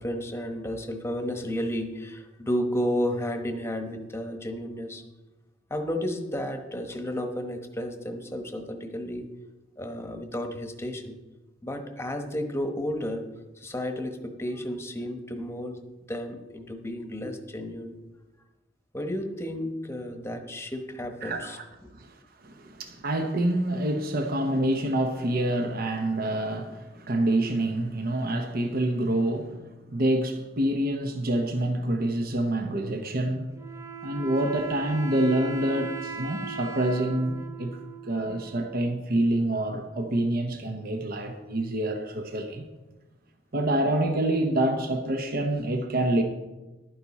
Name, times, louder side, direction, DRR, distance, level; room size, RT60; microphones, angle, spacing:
voice 1, 0.0-5.0 5.7-9.2 9.8-11.2 11.6-13.3 13.6-15.8 16.1-17.9 18.9-21.9, equal, 15° left, 1.1 m, -32 dB
voice 2, 21.2-21.6 21.9-33.5 34.0-37.8 38.0-42.7 43.5-46.2, right 1 dB, 50° right, 0.9 m, -27 dB
Wind instrument woodwind instrument, 33.5-39.0, right 6 dB, 15° right, 0.6 m, -39 dB
12.0 x 9.5 x 4.2 m
head